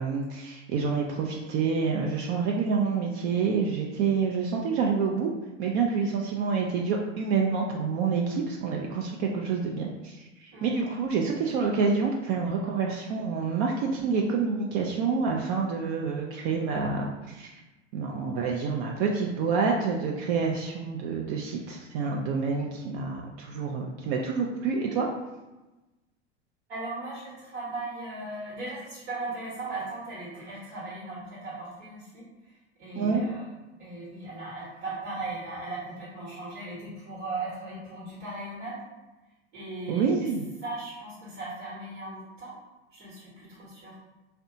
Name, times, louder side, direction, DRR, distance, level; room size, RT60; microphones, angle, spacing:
voice 1, 0.0-5.3 5.6-17.5 17.9-25.1 32.9-33.2 39.9-40.4, right 5 dB, 50° right, 0 dB, 0.4 m, -28 dB
voice 2, 10.5-10.9 26.7-33.5 33.8-38.8 39.5-40.3 40.6-42.5 42.9-44.0, right 2 dB, 70° right, -8 dB, 1.1 m, -38 dB
2.6 x 2.2 x 2.6 m, 1.1 s
hypercardioid pair, 90°, 34 cm